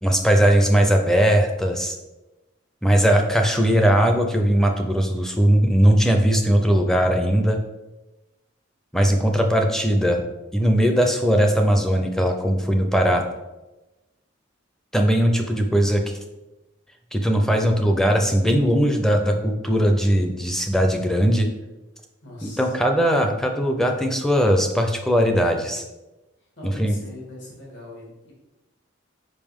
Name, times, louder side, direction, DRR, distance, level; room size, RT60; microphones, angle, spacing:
voice 1, 0.0-2.0 2.8-7.6 8.9-10.2 10.5-13.2 14.9-16.0 17.1-21.5 22.4-25.8 26.6-26.9, equal, ahead, 3 dB, 0.5 m, -19 dB
voice 2, 22.2-22.7 26.6-28.3, left 2 dB, 55° left, -4 dB, 1.8 m, -41 dB
5.2 x 5.1 x 3.6 m, 1.1 s
head